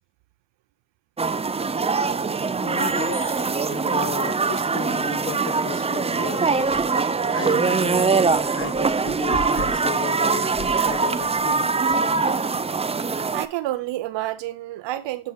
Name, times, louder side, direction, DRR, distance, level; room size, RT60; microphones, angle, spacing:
sound 1, 1.2-13.5, right 4 dB, 15° right, 0.5 m, -23 dB
voice 1, 2.6-6.6 7.3-12.0, left 6 dB, 25° left, 0.9 m, -35 dB
sound 2, 6.5-7.0 8.2-10.0 10.5-11.6, left 5 dB, 45° left, 2.2 m, -38 dB
voice 2, 13.3-15.3, right 15 dB, 70° right, 0.7 m, -29 dB
8.1 x 3.0 x 4.7 m
supercardioid pair, 60°, 46 cm